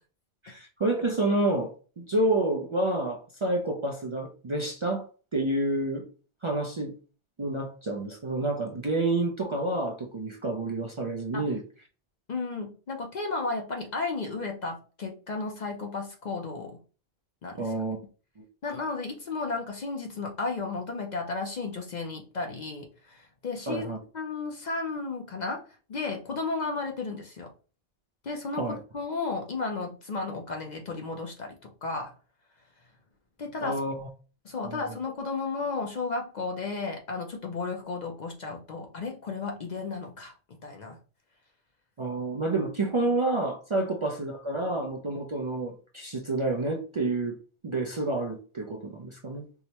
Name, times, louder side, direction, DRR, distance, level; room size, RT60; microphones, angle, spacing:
voice 1, 0.4-5.1 5.3-6.1 6.4-6.9 7.4-11.6 17.6-18.0 18.4-18.5 23.7-24.0 28.6-28.8 33.6-34.1 34.6-34.8 42.0-47.4 47.6-49.5, right 2 dB, 40° right, 1 dB, 0.4 m, -29 dB
voice 2, 12.3-16.8 17.4-17.8 18.6-23.8 24.1-27.5 28.2-32.1 33.4-33.8 34.4-40.3 40.6-41.0 43.8-43.9, left 3 dB, 50° left, 2 dB, 0.7 m, -34 dB
4.6 x 2.1 x 2.9 m, 0.36 s
omnidirectional pair, 1.0 m